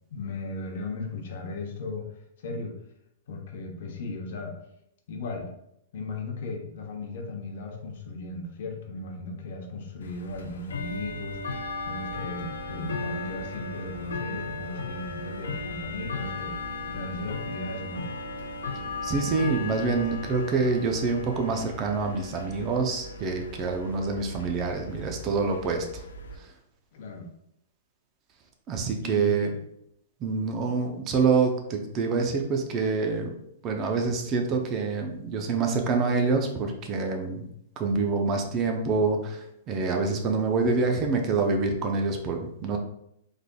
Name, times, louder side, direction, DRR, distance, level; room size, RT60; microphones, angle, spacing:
voice 1, 0.1-2.1 2.4-2.8 3.3-4.5 5.1-5.5 5.9-11.4 11.8-16.5 16.9-18.1 26.9-27.3 29.0-29.6, left 2 dB, 60° left, 2 dB, 0.8 m, -36 dB
Bell / Tick-tock, 10.0-26.4, left 3 dB, 85° left, 0.5 m, -36 dB
voice 2, 19.0-26.0 28.7-29.5 30.2-33.3 33.6-37.5 37.8-42.8, right 4 dB, 30° right, 4 dB, 0.6 m, -26 dB
3.7 x 3.3 x 2.3 m, 0.77 s
hypercardioid pair, 135°, 0 cm